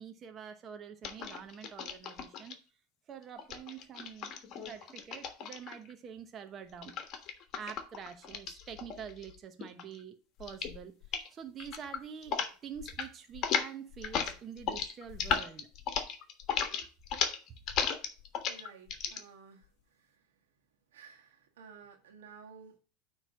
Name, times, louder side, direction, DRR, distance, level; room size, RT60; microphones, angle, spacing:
voice 1, 0.0-2.6 3.1-6.9 7.5-15.7, right 7 dB, 35° right, 0.9 m, -46 dB
sound 1, 1.0-2.5 3.4-5.9 6.8-9.3 9.6-10.0 10.4-10.8 11.0-11.3 11.6-12.5 12.8-13.1 13.3-19.2, left 7 dB, 45° left, 1.3 m, -35 dB
voice 2, 18.5-20.2 20.9-22.8, right 6 dB, 85° right, 1.5 m, -54 dB
9.0 x 3.3 x 6.2 m
hypercardioid pair, 105°, 0 cm